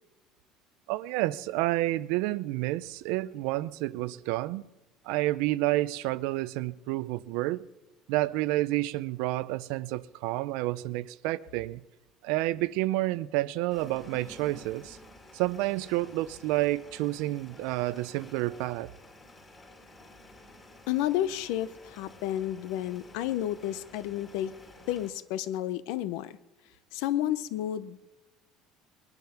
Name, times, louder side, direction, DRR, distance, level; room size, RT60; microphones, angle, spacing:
voice 1, 0.9-4.7 5.0-7.7 8.1-11.8 12.2-15.0 15.3-18.9, right 17 dB, 80° right, 0.6 m, -29 dB
sound 1, 13.7-25.1, left 1 dB, 15° left, 2.7 m, -52 dB
voice 2, 20.9-24.5 24.9-26.4 26.9-28.1, left 12 dB, 75° left, 0.8 m, -31 dB
21.5 x 10.5 x 5.9 m
cardioid pair, 180°, 0 cm